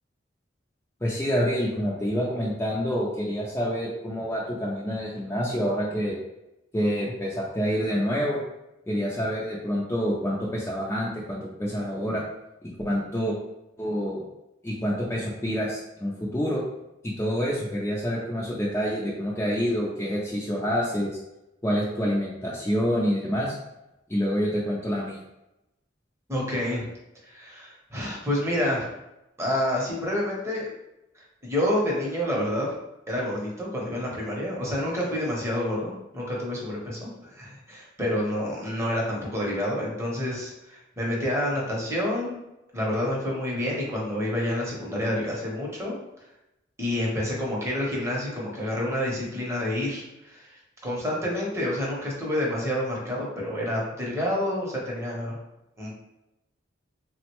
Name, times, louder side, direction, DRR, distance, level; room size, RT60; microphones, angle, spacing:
voice 1, 1.0-6.2 6.7-8.4 8.9-12.2 12.6-13.4 13.8-14.2 14.6-16.6 17.0-21.1 21.6-23.6 24.1-25.2, equal, 15° left, -5 dB, 0.4 m, -27 dB
voice 2, 26.3-26.9 27.2-28.9 29.4-30.7 31.1-32.7 33.1-42.4 42.7-46.0 46.8-55.4 55.8-55.9, left 1 dB, 15° right, -4 dB, 0.8 m, -28 dB
3.6 x 2.1 x 2.9 m, 0.92 s
head